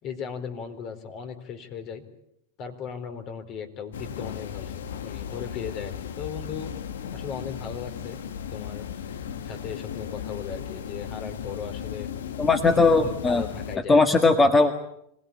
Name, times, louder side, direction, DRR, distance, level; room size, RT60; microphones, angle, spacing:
voice 1, 0.0-2.0 2.6-6.7 7.1-8.2 8.5-8.9 9.4-12.1 12.6-14.0, left 7 dB, 45° left, 7 dB, 4.1 m, -37 dB
sound 1, 3.9-13.8, left 8 dB, 85° left, 1.5 m, -36 dB
voice 2, 12.4-13.4 13.9-14.8, left 3 dB, 15° left, 7 dB, 1.7 m, -19 dB
26.0 x 18.5 x 8.7 m, 0.77 s
hypercardioid pair, 110°, 0 cm